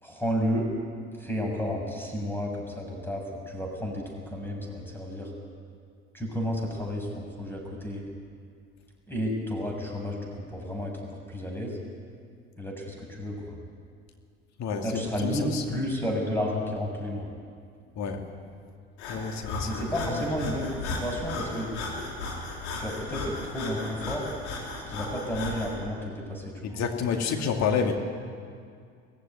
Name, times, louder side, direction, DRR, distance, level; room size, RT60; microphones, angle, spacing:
voice 1, 0.0-0.7 1.2-4.0 4.3-5.3 6.1-8.0 9.1-11.8 12.6-13.6 14.8-17.3 19.7-21.7 22.8-24.3 24.9-26.8, equal, 5° left, 0 dB, 6.8 m, -32 dB
voice 2, 14.6-15.6 18.0-18.2 19.1-19.8 20.1-20.2 26.6-28.0, left 6 dB, 50° left, 4 dB, 2.5 m, -29 dB
Breathing, 19.0-25.8, left 3 dB, 75° left, 3.8 m, -35 dB
18.5 x 15.0 x 9.4 m, 2.2 s
hypercardioid pair, 60°, 34 cm